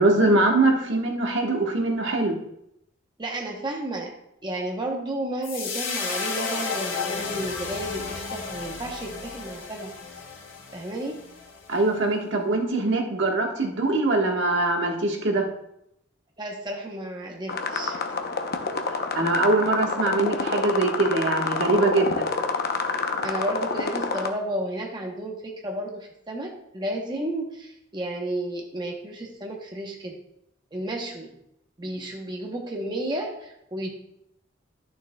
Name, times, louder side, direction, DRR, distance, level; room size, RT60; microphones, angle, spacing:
voice 1, 0.0-2.3 11.7-15.4 19.1-22.3, right 2 dB, 65° right, 1 dB, 1.3 m, -22 dB
voice 2, 3.2-4.1 4.4-9.9 10.7-11.2 16.4-18.1 23.2-30.2 30.7-31.4 31.8-33.9, right 1 dB, 20° right, 0 dB, 0.8 m, -32 dB
sound 1, 5.4-11.8, left 5 dB, 75° left, 1.3 m, -33 dB
sound 2, 17.5-24.3, left 4 dB, 55° left, 0.7 m, -28 dB
11.0 x 6.7 x 2.2 m, 0.79 s
head